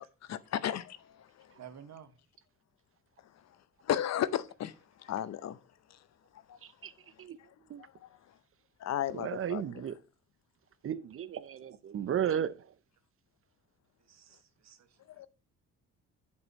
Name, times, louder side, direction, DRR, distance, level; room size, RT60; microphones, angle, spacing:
voice 1, 0.0-1.6 3.2-5.6 5.9-6.1 6.3-8.4 8.8-9.6 15.1-15.3, left 11 dB, 60° left, 0.7 m, -36 dB
voice 2, 1.6-2.1 14.0-15.3, right 9 dB, 65° right, 1.2 m, -52 dB
voice 3, 6.6-6.9 7.2-7.4 7.7-7.8 9.1-9.9 10.8-12.7, right 9 dB, 45° right, 0.6 m, -34 dB
7.9 x 5.5 x 4.5 m
cardioid pair, 90°, 30 cm